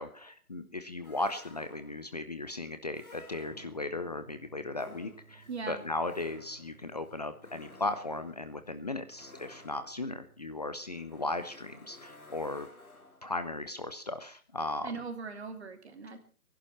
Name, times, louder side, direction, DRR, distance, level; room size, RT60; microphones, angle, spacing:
voice 1, 0.0-12.7 13.2-14.9, left 2 dB, 30° left, 10 dB, 0.7 m, -36 dB
sound 1, 1.0-2.1 2.9-4.0 4.7-13.4, left 2 dB, 90° left, 4.2 m, -55 dB
Electric guitar / Strum, 3.5-13.2, right 6 dB, 5° right, 2.7 m, -60 dB
voice 2, 5.5-5.8 14.8-16.2, right 4 dB, 50° right, 7 dB, 2.8 m, -40 dB
17.5 x 11.5 x 5.6 m, 0.40 s
figure-of-eight pair, 160°, 42 cm